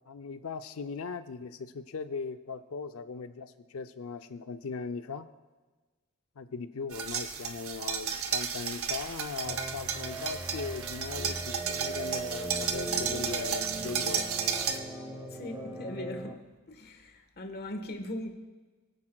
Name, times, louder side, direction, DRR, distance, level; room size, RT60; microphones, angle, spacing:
voice 1, 0.1-5.3 6.4-14.4, left 5 dB, 75° left, 10 dB, 0.5 m, -39 dB
sound 1, 6.9-14.8, right 7 dB, 75° right, 0.9 m, -33 dB
sound 2, 9.4-16.3, right 2 dB, 10° right, 1.1 m, -39 dB
voice 2, 15.3-16.4 16.7-18.3, left 1 dB, 50° left, 5 dB, 1.3 m, -39 dB
22.0 x 9.8 x 2.3 m, 1.3 s
head